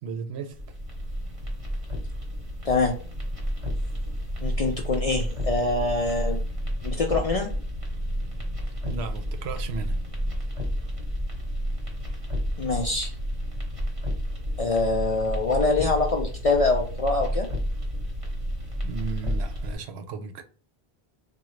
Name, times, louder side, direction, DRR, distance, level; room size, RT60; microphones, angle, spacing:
voice 1, 0.0-0.6 8.8-10.0 18.8-20.4, right 5 dB, 85° right, 0.8 m, -35 dB
sound 1, 0.5-19.7, equal, 35° right, 0.9 m, -30 dB
voice 2, 4.4-6.4 6.8-7.5 12.6-13.1 14.6-17.5, left 3 dB, 55° left, 0.4 m, -24 dB
3.7 x 2.2 x 3.1 m
omnidirectional pair, 1.1 m